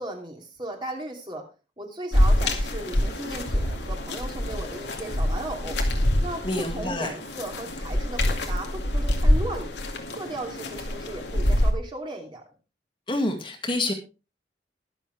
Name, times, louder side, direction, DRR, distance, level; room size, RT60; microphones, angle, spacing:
voice 1, 0.0-1.4 1.8-5.8 6.2-9.8 10.1-12.4, right 1 dB, 25° right, 2 dB, 2.8 m, -36 dB
sound 1, 2.1-11.7, left 1 dB, 75° left, 2.2 m, -25 dB
voice 2, 6.4-7.1 13.1-13.9, left 2 dB, 25° left, 3 dB, 2.1 m, -27 dB
22.0 x 7.3 x 3.4 m, 0.31 s
head